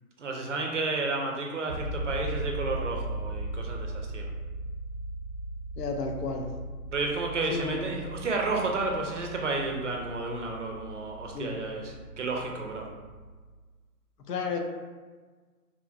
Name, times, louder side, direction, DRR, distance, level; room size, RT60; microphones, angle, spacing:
voice 1, 0.2-4.3 6.9-11.8 12.2-12.9, right 3 dB, 55° right, 1 dB, 0.5 m, -31 dB
sound 1, 1.7-13.6, right 1 dB, 30° left, 0.5 m, -38 dB
voice 2, 5.8-6.5 7.5-8.0 11.3-11.6 14.2-14.6, left 4 dB, 80° left, 3 dB, 0.7 m, -32 dB
2.8 x 2.7 x 2.3 m, 1.4 s
hypercardioid pair, 165°, 47 cm